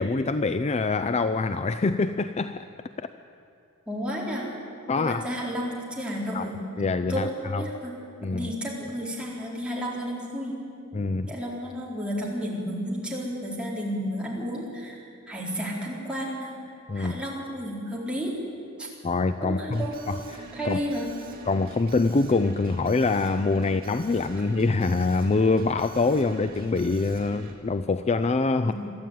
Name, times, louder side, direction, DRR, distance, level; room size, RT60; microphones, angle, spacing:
voice 1, 0.0-2.7 3.0-3.1 4.9-5.2 6.3-6.4 6.8-7.6 8.2-8.5 10.9-11.3 16.9-17.1 19.0-20.8 21.5-28.7, left 3 dB, 30° left, 11 dB, 0.4 m, -25 dB
voice 2, 3.9-4.5 5.0-6.6 7.1-7.9 8.3-10.5 11.2-16.5 16.9-18.4 18.8-18.9 19.4-20.2 20.5-21.1 24.3-24.4 28.6-28.7, equal, 5° right, -4 dB, 4.4 m, -32 dB
Alarm, 19.7-27.5, right 3 dB, 45° right, 3.1 m, -45 dB
23.0 x 13.5 x 9.4 m, 2.5 s
head